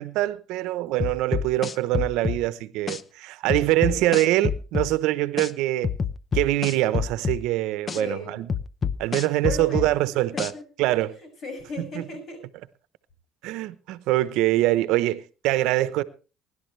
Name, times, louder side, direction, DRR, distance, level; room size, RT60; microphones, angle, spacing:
voice 1, 0.0-5.9 6.3-8.5 9.0-10.5 10.8-11.2 11.9-12.0 13.4-16.0, right 16 dB, 80° right, 0.9 m, -24 dB
sound 1, 1.0-2.4 2.9-3.0 3.5-4.9 5.4-5.5 5.8-7.4 7.9-8.0 8.5-9.9 10.4-10.5, left 6 dB, 35° left, 0.8 m, -27 dB
voice 2, 3.8-4.3 8.0-8.5 9.4-10.6 11.2-12.4, left 3 dB, 60° left, 6.9 m, -37 dB
23.5 x 11.5 x 3.3 m
cardioid pair, 105°, 0 cm